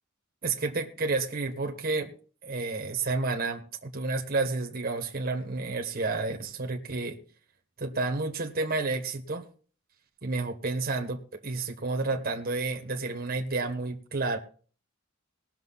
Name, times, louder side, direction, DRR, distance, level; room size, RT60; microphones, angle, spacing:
voice 1, 0.4-2.1 2.4-7.2 7.8-9.4 10.2-14.4, right 3 dB, 45° right, 2 dB, 1.5 m, -30 dB
19.5 x 6.8 x 4.1 m, 0.42 s
head